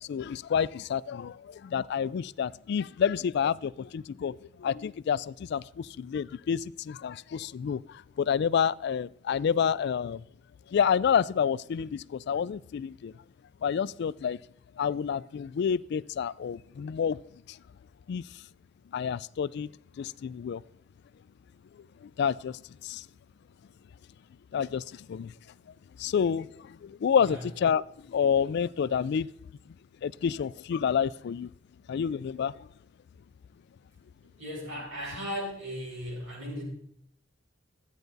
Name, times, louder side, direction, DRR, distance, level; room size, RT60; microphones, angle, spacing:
voice 1, 0.0-10.2 10.7-13.1 13.6-14.4 14.8-17.2 17.5-17.6 18.1-18.4 18.9-19.7 20.0-20.6 21.7-23.1 24.5-25.3 26.0-29.3 30.0-31.5 31.9-32.7, left 7 dB, 60° left, 19 dB, 0.3 m, -29 dB
voice 2, 34.4-36.6, equal, 90° right, -4 dB, 5.4 m, -37 dB
13.0 x 9.1 x 4.0 m, 0.71 s
head